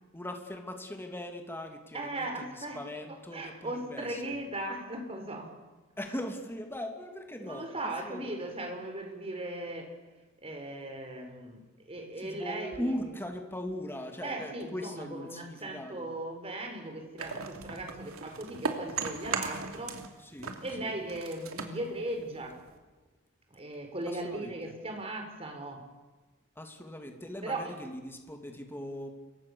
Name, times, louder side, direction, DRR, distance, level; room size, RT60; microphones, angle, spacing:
voice 1, 0.1-4.4 6.0-7.7 8.0-8.3 12.2-16.1 20.3-21.0 24.1-24.7 26.6-29.1, left 1 dB, 10° left, 4 dB, 2.8 m, -40 dB
voice 2, 1.9-2.8 3.1-5.5 7.4-9.9 10.4-12.9 14.2-20.0 20.6-22.6 23.5-25.9 27.4-27.7, right 1 dB, 30° right, 4 dB, 5.2 m, -38 dB
sound 1, 17.2-20.1 20.4-22.8, right 4 dB, 90° right, 2.9 m, -37 dB
27.0 x 23.5 x 7.1 m, 1.2 s
head